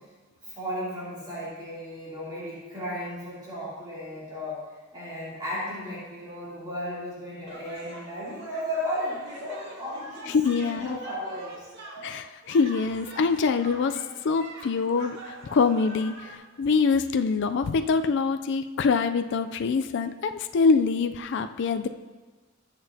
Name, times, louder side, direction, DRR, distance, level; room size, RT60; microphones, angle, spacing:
voice 1, 0.4-4.7 4.9-11.7 12.0-12.1, equal, 20° right, -9 dB, 3.0 m, -35 dB
sound 1, 7.5-16.3, right 2 dB, 60° right, 2.0 m, -44 dB
voice 2, 10.3-11.0 12.0-14.0 14.2-21.9, left 5 dB, 60° left, 8 dB, 0.4 m, -24 dB
20.0 x 6.8 x 2.8 m, 1.3 s
head